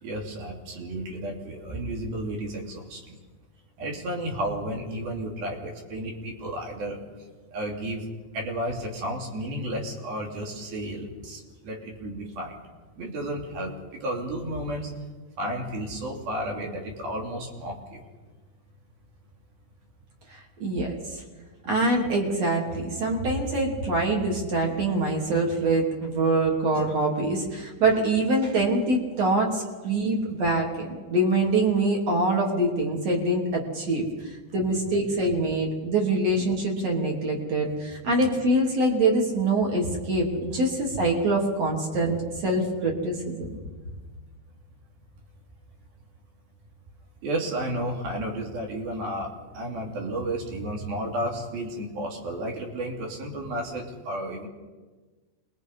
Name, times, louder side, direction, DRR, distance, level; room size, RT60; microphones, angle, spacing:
voice 1, 0.0-3.0 3.8-7.0 7.5-8.0 8.3-12.5 13.0-14.9 15.4-18.0 43.6-43.8 47.2-54.5, right 1 dB, 55° right, 0 dB, 4.7 m, -32 dB
voice 2, 20.3-21.2 21.7-43.5, right 2 dB, 40° right, 0 dB, 3.7 m, -25 dB
27.5 x 21.5 x 5.5 m, 1.3 s
omnidirectional pair, 5.4 m